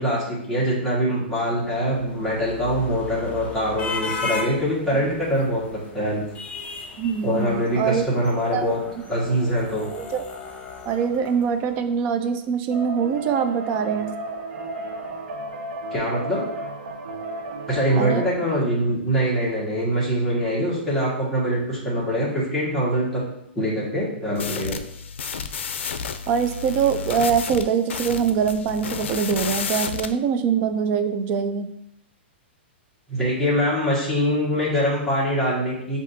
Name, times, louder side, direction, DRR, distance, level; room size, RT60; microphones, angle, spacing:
voice 1, 0.0-6.2 7.2-8.8 9.1-9.9 15.9-16.4 17.7-23.2 23.5-24.8 33.1-36.0, equal, ahead, -8 dB, 1.5 m, -23 dB
sound 1, 1.7-12.0, left 3 dB, 20° left, 0.6 m, -36 dB
voice 2, 7.0-8.0 8.5-8.7 10.1-10.2 10.9-14.1 18.0-18.2 26.3-31.7, right 7 dB, 30° right, 8 dB, 0.4 m, -23 dB
sound 2, 12.7-18.3, right 2 dB, 70° right, 0.9 m, -33 dB
sound 3, 24.3-30.1, left 6 dB, 85° left, 0.4 m, -31 dB
7.2 x 2.7 x 2.7 m, 0.78 s
hypercardioid pair, 150°, 6 cm